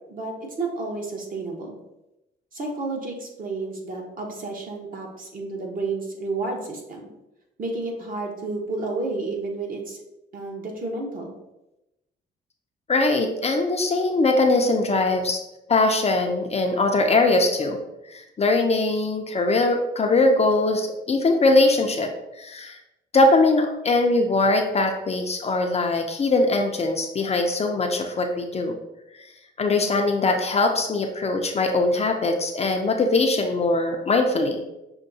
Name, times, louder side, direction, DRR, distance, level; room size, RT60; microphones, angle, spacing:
voice 1, 0.1-1.8 2.5-7.1 7.6-10.0 10.3-11.3, right 3 dB, 45° right, 0 dB, 1.1 m, -31 dB
voice 2, 12.9-15.4 15.7-17.8 18.1-22.8 23.1-28.8 29.6-34.6, left 2 dB, 30° left, 3 dB, 0.5 m, -21 dB
6.3 x 2.1 x 2.7 m, 0.92 s
cardioid pair, 90°, 20 cm